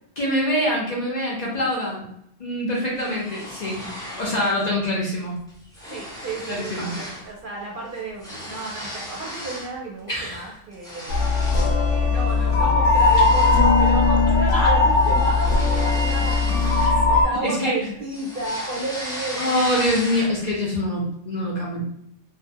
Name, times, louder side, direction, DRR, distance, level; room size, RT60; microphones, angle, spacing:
voice 1, 0.2-2.1 2.4-3.9 4.2-5.3 6.5-6.9 10.1-10.5 14.5-14.7 17.4-17.7 19.4-21.8, left 1 dB, 45° left, -5 dB, 0.6 m, -24 dB
sound 1, 3.0-4.6 5.0-5.2 5.5-7.3 7.6-9.8 10.2-11.8 12.3-12.5 12.9-17.5 17.8-20.5, equal, 5° left, 0.5 m, -36 dB
voice 2, 5.9-11.2 11.6-16.6 17.1-19.5, right 2 dB, 55° right, -2 dB, 0.7 m, -33 dB
sound 2, 11.1-17.2, left 3 dB, 75° left, 0.9 m, -18 dB
2.6 x 2.1 x 2.6 m, 0.74 s
omnidirectional pair, 1.2 m